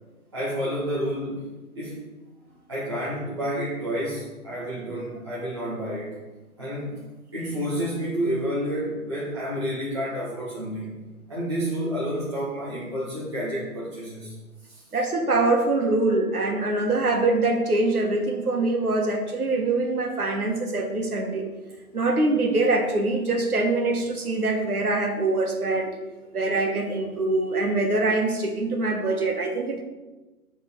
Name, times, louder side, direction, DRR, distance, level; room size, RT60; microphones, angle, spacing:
voice 1, 0.3-1.5 1.7-2.0 2.7-6.2 6.6-7.0 7.3-11.0 11.3-14.4 14.7-14.8, equal, 20° right, -10 dB, 0.8 m, -29 dB
voice 2, 14.9-21.5 21.9-25.9 26.3-29.8, right 2 dB, 70° right, 2 dB, 1.5 m, -24 dB
8.0 x 3.9 x 4.1 m, 1.2 s
figure-of-eight pair, 160°, 45 cm